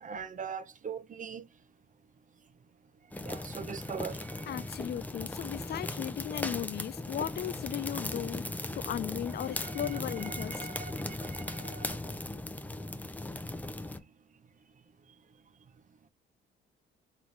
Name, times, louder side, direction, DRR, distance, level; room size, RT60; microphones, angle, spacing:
voice 1, 0.0-1.4 3.3-4.5 9.6-9.7 10.3-12.1, right 6 dB, 40° right, 0.7 m, -41 dB
sound 1, 3.1-14.0, left 2 dB, 10° left, 0.6 m, -38 dB
voice 2, 4.4-8.5 8.7-11.0, left 11 dB, 55° left, 0.4 m, -36 dB
4.0 x 3.0 x 3.3 m
cardioid pair, 90°, 20 cm